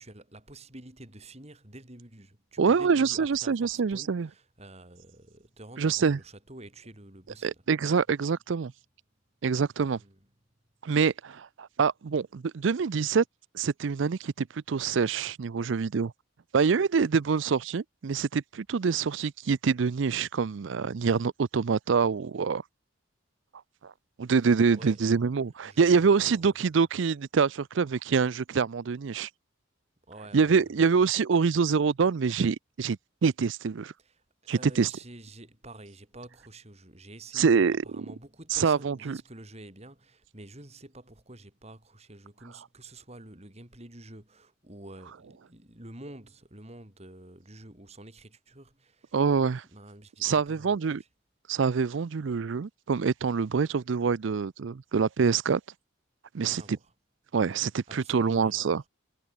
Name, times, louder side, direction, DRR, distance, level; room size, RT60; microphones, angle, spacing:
voice 1, 0.0-7.6 10.0-10.2 24.7-25.0 25.6-26.6 30.1-30.7 34.0-49.2 49.7-51.1 56.4-56.9 57.9-58.8, right 1 dB, 30° right, 3.7 m, -48 dB
voice 2, 2.6-4.3 5.8-6.2 7.4-8.7 9.4-10.0 10.8-13.2 13.5-16.1 16.5-22.6 23.8-23.9 24.2-29.3 30.3-33.9 34.5-34.9 37.3-37.8 38.5-39.2 49.1-49.6 50.2-51.0 51.5-55.6 56.3-56.8 57.3-58.8, right 5 dB, 65° right, 0.5 m, -25 dB
head